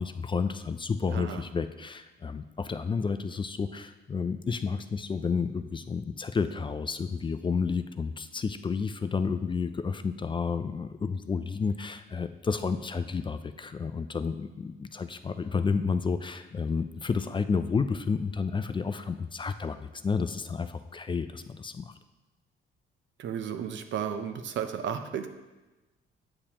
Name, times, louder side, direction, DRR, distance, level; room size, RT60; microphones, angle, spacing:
voice 1, 0.0-21.9, left 5 dB, 25° left, 10 dB, 0.4 m, -31 dB
voice 2, 1.1-1.4 23.2-25.3, right 8 dB, 70° right, 7 dB, 0.7 m, -33 dB
8.6 x 6.6 x 2.9 m, 1.1 s
cardioid pair, 90°, 20 cm